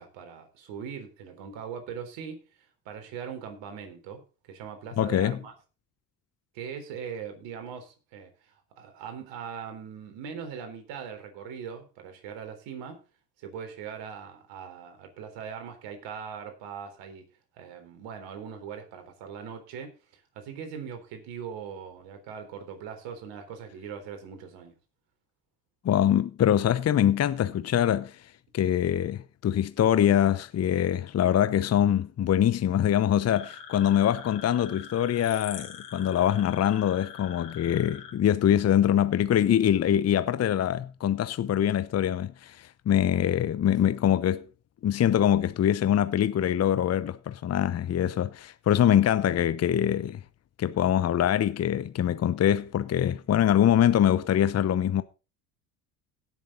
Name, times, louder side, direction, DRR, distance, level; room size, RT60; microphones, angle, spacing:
voice 1, 0.0-2.4 2.9-4.2 4.5-5.5 6.5-8.3 8.8-13.0 13.4-17.3 17.6-24.8, right 7 dB, 65° right, 3.9 m, -40 dB
voice 2, 5.0-5.4 25.8-28.2 28.5-44.4 44.8-50.2 50.6-55.0, left 10 dB, 35° left, 0.8 m, -24 dB
sound 1, 33.3-38.1, left 8 dB, 85° left, 4.5 m, -44 dB
17.5 x 7.0 x 3.9 m
hypercardioid pair, 65°, 47 cm